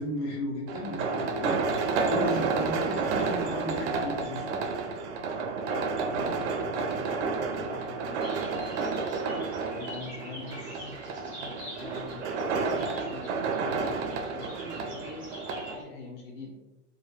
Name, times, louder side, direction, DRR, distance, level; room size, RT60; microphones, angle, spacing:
voice 1, 0.0-4.6, left 1 dB, 90° left, -2 dB, 1.0 m, -34 dB
sound 1, 0.7-15.7, right 4 dB, 80° right, 0.5 m, -31 dB
voice 2, 5.6-8.9 9.7-16.5, left 2 dB, 60° left, -2 dB, 0.6 m, -44 dB
sound 2, 8.2-15.8, equal, 5° right, 0.5 m, -46 dB
2.4 x 2.0 x 2.6 m, 1.0 s
supercardioid pair, 175°, 33 cm